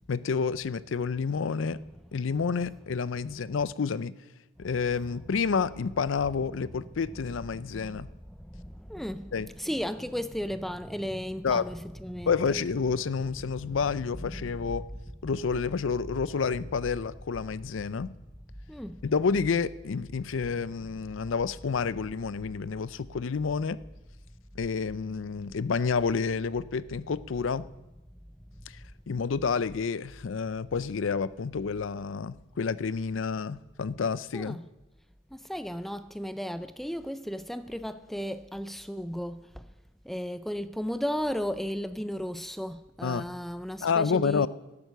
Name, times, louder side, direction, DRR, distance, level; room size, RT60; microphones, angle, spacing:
voice 1, 0.1-1.8 2.1-4.1 4.6-8.1 9.3-9.5 11.4-11.6 12.3-14.8 15.2-18.1 19.0-23.8 24.6-27.7 29.1-34.6 43.0-43.3 43.8-44.5, left 5 dB, 75° left, 0.5 m, -29 dB
voice 2, 7.5-8.0 8.3-12.6 13.7-13.8 14.3-14.5 18.7-19.0 34.3-34.7 35.3-39.7 40.0-44.5, equal, ahead, 0.3 m, -35 dB
13.0 x 10.5 x 6.7 m
head